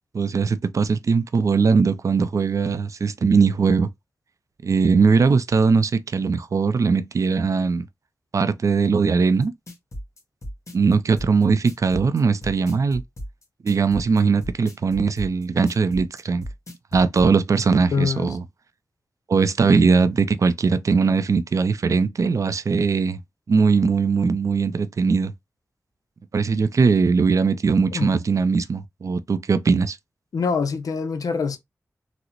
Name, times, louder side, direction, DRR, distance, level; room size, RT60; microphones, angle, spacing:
voice 1, 0.1-3.9 4.6-7.8 8.3-9.5 10.7-13.0 13.6-16.4 16.9-18.4 19.3-23.2 23.5-25.3 26.3-30.0, right 5 dB, 65° right, 0.4 m, -20 dB
sound 1, 9.4-17.3, equal, 55° left, 1.4 m, -35 dB
voice 2, 17.7-18.3 27.9-28.1 30.3-31.6, left 5 dB, 85° left, 0.5 m, -25 dB
3.9 x 2.0 x 2.9 m
cardioid pair, 50°, 6 cm